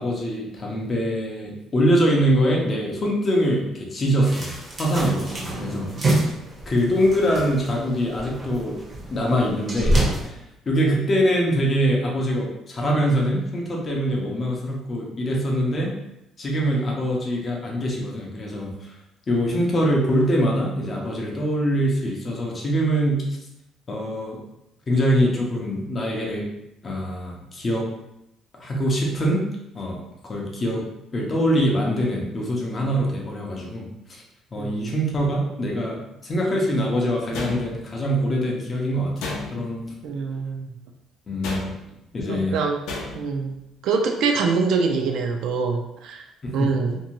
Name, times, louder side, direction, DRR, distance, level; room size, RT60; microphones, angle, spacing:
voice 1, 0.0-4.5 4.8-5.9 6.7-8.8 9.1-10.4 10.7-16.0 16.4-18.9 19.3-23.4 23.9-24.4 24.9-26.5 26.8-27.9 28.5-29.5 29.7-30.9 31.1-34.2 34.5-39.8 41.3-41.7 42.1-42.6 46.4-46.7, equal, 25° left, -1 dB, 0.5 m, -23 dB
sound 1, 4.2-10.3, right 1 dB, 25° right, 0.6 m, -27 dB
voice 2, 34.6-34.9 40.0-40.7 42.3-42.8 43.1-43.6 43.8-46.3 46.5-47.0, right 4 dB, 70° right, 3 dB, 0.4 m, -24 dB
sound 2, 37.3-38.1 39.2-39.8 41.4-42.0 42.9-43.4, left 3 dB, 85° left, 0.5 m, -33 dB
2.6 x 2.2 x 2.9 m, 0.85 s
cardioid pair, 160°, 0 cm